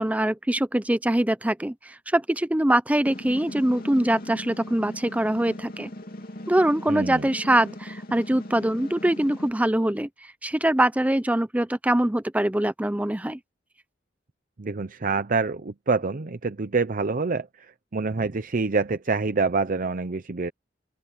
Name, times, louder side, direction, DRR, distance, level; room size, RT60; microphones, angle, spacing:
voice 1, 0.0-5.9 6.5-10.1 10.4-13.4, right 1 dB, 10° right, 0.6 m, -23 dB
sound 1, 3.0-9.5, left 1 dB, 55° left, 2.7 m, -39 dB
voice 2, 6.9-7.2 14.6-20.5, right 4 dB, 50° right, 0.7 m, -26 dB
open air
head